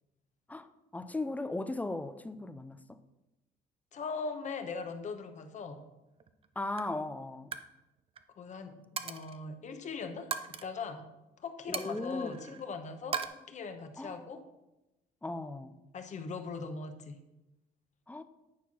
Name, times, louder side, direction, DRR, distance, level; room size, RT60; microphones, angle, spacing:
voice 1, 0.5-2.8 6.6-7.5 11.7-12.6 14.0-14.2 15.2-15.8 18.1-18.2, left 2 dB, 10° left, 0.5 m, -37 dB
voice 2, 3.9-5.8 8.4-10.3 10.6-11.1 11.4-13.2 13.5-14.4 15.9-17.2, left 4 dB, 45° left, 1.1 m, -40 dB
Coin (dropping), 6.2-6.5 6.8-7.0 7.3-7.7 8.0-8.2 9.0-9.4 10.3-10.6 11.7-12.6 13.1-13.3, right 6 dB, 35° right, 0.6 m, -38 dB
9.5 x 4.5 x 6.0 m
cardioid pair, 110°, 17 cm